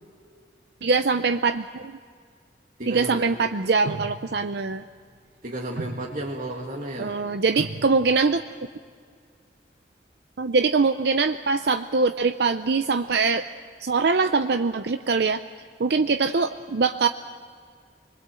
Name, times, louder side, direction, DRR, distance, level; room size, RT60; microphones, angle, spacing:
voice 1, 0.8-1.9 2.9-4.8 7.0-8.4 10.4-13.4 13.8-15.4 15.8-17.1, right 4 dB, 65° right, 9 dB, 0.6 m, -23 dB
voice 2, 2.8-3.3 5.4-7.2, right 1 dB, 50° right, -2 dB, 2.0 m, -33 dB
sound 1, 3.9-4.5 5.5-6.4 7.1-7.2 7.5-8.5, right 2 dB, 85° right, 1.1 m, -36 dB
25.5 x 20.5 x 7.7 m, 2.1 s
head